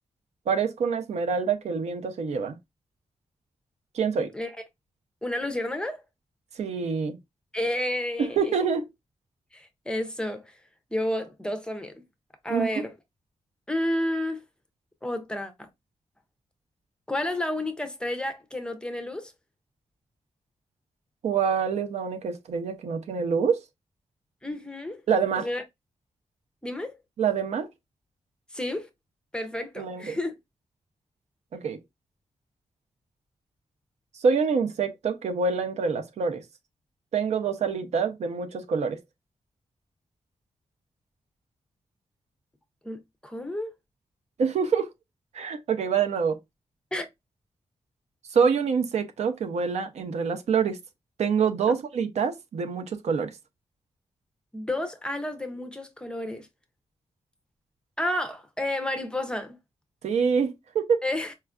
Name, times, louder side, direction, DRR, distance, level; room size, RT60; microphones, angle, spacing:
voice 1, 0.5-2.6 3.9-4.3 6.6-7.2 8.2-8.9 12.5-12.8 21.2-23.6 25.1-25.5 27.2-27.7 29.8-30.2 31.5-31.8 34.2-36.4 37.1-39.0 44.4-44.9 45.3-46.4 48.3-50.8 51.2-53.3 60.0-61.0, right 6 dB, 75° right, 0.5 m, -26 dB
voice 2, 5.2-6.0 7.5-8.6 9.5-10.5 10.9-11.9 12.4-12.9 13.7-14.4 15.0-15.7 17.1-19.3 24.4-25.0 25.4-25.6 26.6-27.0 28.5-28.9 29.3-30.4 42.8-43.7 46.9-47.1 54.5-56.5 58.0-59.6 61.0-61.3, left 1 dB, 10° left, 0.4 m, -31 dB
4.3 x 2.3 x 2.3 m
wide cardioid pair, 170°, 11 cm